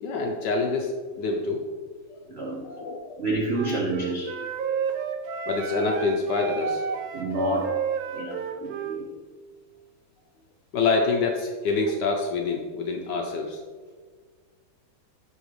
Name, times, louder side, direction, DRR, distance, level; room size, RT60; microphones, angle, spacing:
voice 1, 0.0-1.7 2.2-3.2 5.5-6.8 10.7-13.6, left 3 dB, 70° left, 2 dB, 1.2 m, -26 dB
voice 2, 2.3-2.7 3.2-4.4 7.1-7.8 8.1-9.1, right 1 dB, 65° right, -2 dB, 0.6 m, -29 dB
Wind instrument woodwind instrument, 3.5-9.0, right 7 dB, 90° right, 1.4 m, -31 dB
10.5 x 4.0 x 3.1 m, 1.5 s
omnidirectional pair, 2.2 m